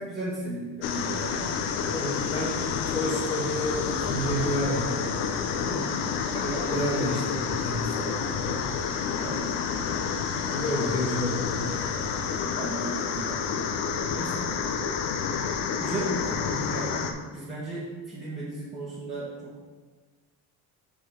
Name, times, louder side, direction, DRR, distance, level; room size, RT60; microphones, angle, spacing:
voice 1, 0.0-1.6 5.6-6.1 9.2-9.6 12.5-13.8 14.1-14.5 15.8-19.5, right 2 dB, 15° right, -8 dB, 1.5 m, -36 dB
sound 1, 0.8-17.1, left 6 dB, 80° left, 0.8 m, -29 dB
voice 2, 1.9-5.0 6.3-8.6 10.3-11.9, left 1 dB, 15° left, -3 dB, 1.7 m, -30 dB
6.2 x 3.9 x 5.5 m, 1.4 s
cardioid pair, 140°, 42 cm